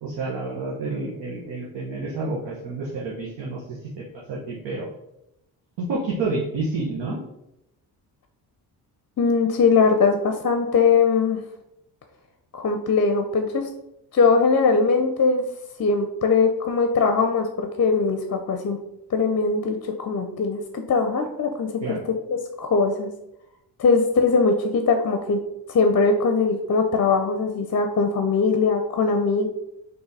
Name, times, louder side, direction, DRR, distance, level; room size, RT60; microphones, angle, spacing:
voice 1, 0.0-4.0 4.3-4.9 5.8-7.2 21.8-22.0, right 3 dB, 80° right, -5 dB, 1.0 m, -29 dB
voice 2, 9.2-11.4 12.5-13.7 14.1-15.4 15.8-18.8 19.1-22.0 22.3-23.1 23.8-25.4 25.7-29.5, left 4 dB, 40° left, 6 dB, 0.5 m, -21 dB
4.0 x 2.7 x 3.9 m, 0.86 s
supercardioid pair, 60°, 42 cm